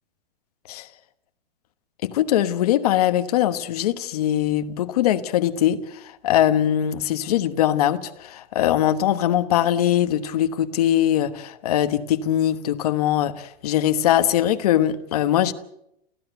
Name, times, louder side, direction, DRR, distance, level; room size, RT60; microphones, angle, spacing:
voice 1, 2.0-5.8 6.2-15.5, left 11 dB, 40° left, 1.2 m, -21 dB
29.5 x 15.5 x 8.1 m
hypercardioid pair, 175°, 30 cm